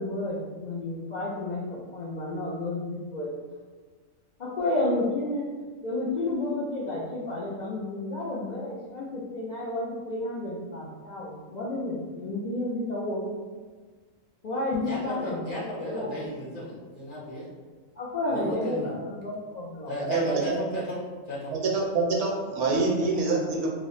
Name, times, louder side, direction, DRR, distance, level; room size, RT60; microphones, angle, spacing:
voice 1, 0.0-3.3 4.4-5.5 5.8-13.3 14.4-16.2 16.6-16.7 18.0-19.9, left 2 dB, 85° left, -7 dB, 0.3 m, -31 dB
voice 2, 14.8-17.5 18.3-18.9 19.9-21.0 21.3-21.6, left 1 dB, 45° left, -6 dB, 0.8 m, -35 dB
voice 3, 20.0-20.5 21.5-23.7, right 3 dB, 65° right, -2 dB, 0.9 m, -26 dB
3.0 x 2.0 x 3.8 m, 1.4 s
omnidirectional pair, 1.4 m